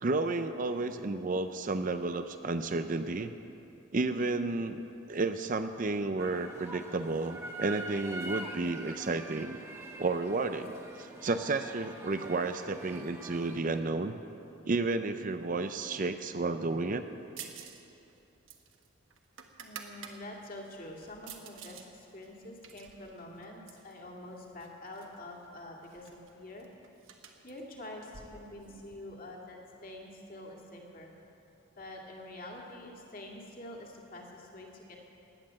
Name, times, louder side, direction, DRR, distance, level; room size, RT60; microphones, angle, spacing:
voice 1, 0.0-3.3 3.9-9.6 10.0-14.2 14.7-17.0, right 3 dB, 40° right, 9 dB, 0.5 m, -32 dB
sound 1, 6.2-13.8, right 2 dB, 15° right, 1.2 m, -45 dB
sound 2, 17.4-17.8 18.1-20.2 20.6-21.9 22.2-23.9 24.6-25.2 25.4-25.5 25.8-29.0, right 7 dB, 60° right, 1.3 m, -49 dB
voice 2, 19.6-26.7 27.4-31.1 31.8-35.0, left 1 dB, 40° left, -1 dB, 2.3 m, -46 dB
18.0 x 9.8 x 7.5 m, 2.9 s
head